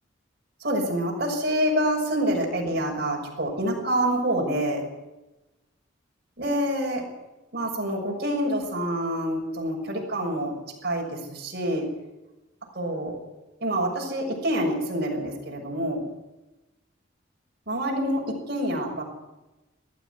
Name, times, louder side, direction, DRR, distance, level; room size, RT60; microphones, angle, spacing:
voice 1, 0.6-4.8 6.4-7.0 7.5-10.6 10.8-11.9 12.7-13.2 13.6-16.0 17.7-19.0, right 1 dB, 55° right, -1 dB, 6.5 m, -27 dB
20.0 x 14.0 x 9.7 m, 1.0 s
head